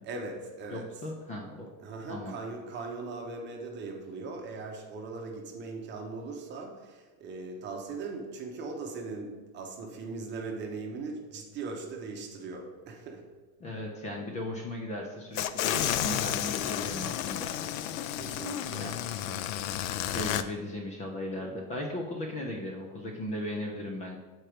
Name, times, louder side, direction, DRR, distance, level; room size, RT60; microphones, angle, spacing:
voice 1, 0.0-0.9 1.8-13.2 18.1-18.8 19.3-19.7, right 3 dB, 25° right, 1 dB, 0.9 m, -39 dB
voice 2, 0.7-1.7 2.1-2.4 13.6-17.5 18.8-18.9 20.1-24.2, left 1 dB, 20° left, 1 dB, 0.3 m, -37 dB
sound 1, 15.3-20.4, left 11 dB, 70° left, 0.5 m, -31 dB
7.5 x 4.5 x 5.0 m, 1.3 s
cardioid pair, 165°, 42 cm